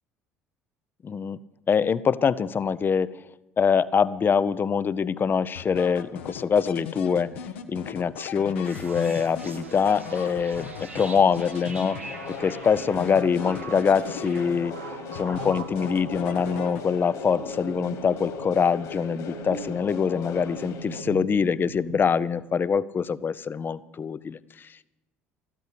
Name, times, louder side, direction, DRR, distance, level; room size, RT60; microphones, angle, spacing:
voice 1, 1.0-1.4 1.7-3.2 3.6-14.7 15.1-24.9, left 6 dB, 30° left, 18 dB, 0.6 m, -24 dB
sound 1, 5.6-12.4 12.7-14.8 15.2-17.2, left 8 dB, 70° left, 1.0 m, -39 dB
sound 2, 8.6-22.3, right 4 dB, 85° right, 1.5 m, -41 dB
sound 3, 12.0-21.0, left 5 dB, 55° left, 2.4 m, -39 dB
14.0 x 12.5 x 6.8 m, 0.99 s
figure-of-eight pair, 55°, 7 cm